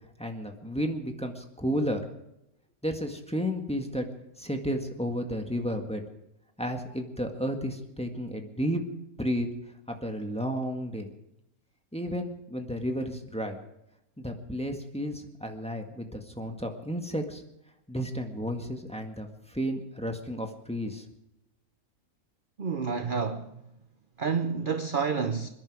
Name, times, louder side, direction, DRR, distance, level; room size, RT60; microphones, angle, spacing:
voice 1, 0.2-2.0 2.8-4.1 4.4-6.0 6.6-8.8 9.2-9.5 10.0-11.1 11.9-13.6 14.2-17.4 17.9-21.1, equal, 5° left, 1.7 m, -32 dB
voice 2, 22.6-23.6 24.2-25.5, right 5 dB, 45° right, 0.9 m, -29 dB
27.0 x 10.5 x 4.9 m
omnidirectional pair, 1.5 m